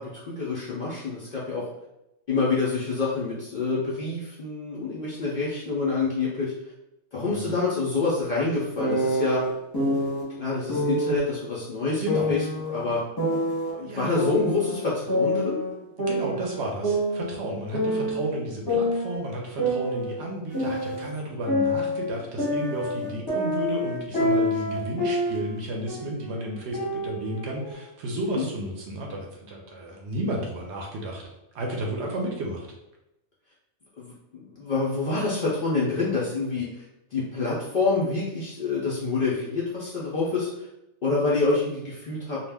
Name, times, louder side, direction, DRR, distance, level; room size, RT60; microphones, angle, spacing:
voice 1, 0.0-1.6 2.3-6.5 7.1-9.4 10.4-12.4 12.7-13.0 13.8-15.6 28.3-28.5 34.0-36.8 37.1-40.7 41.0-42.4, left 3 dB, 70° left, -6 dB, 0.4 m, -27 dB
voice 2, 7.2-7.6 12.0-12.3 13.8-14.3 16.1-31.2 31.5-32.7, right 1 dB, 60° right, 0 dB, 0.8 m, -32 dB
sound 1, 8.8-10.2 10.7-11.2 12.1-13.7 14.2-15.7 16.0-18.2 18.7-21.1 21.5-25.6 25.9-26.2 26.7-27.7, equal, 20° left, 0.6 m, -27 dB
2.4 x 2.1 x 3.3 m, 0.90 s
omnidirectional pair, 1.5 m